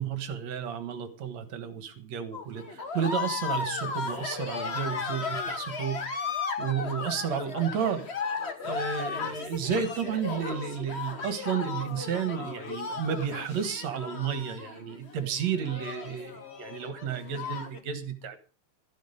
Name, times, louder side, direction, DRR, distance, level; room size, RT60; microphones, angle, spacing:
voice 1, 0.0-8.1 8.6-18.4, right 7 dB, 65° right, 10 dB, 2.7 m, -32 dB
sound 1, 2.3-17.8, left 5 dB, 40° left, 0.9 m, -35 dB
13.5 x 11.5 x 5.1 m, 0.34 s
omnidirectional pair, 3.4 m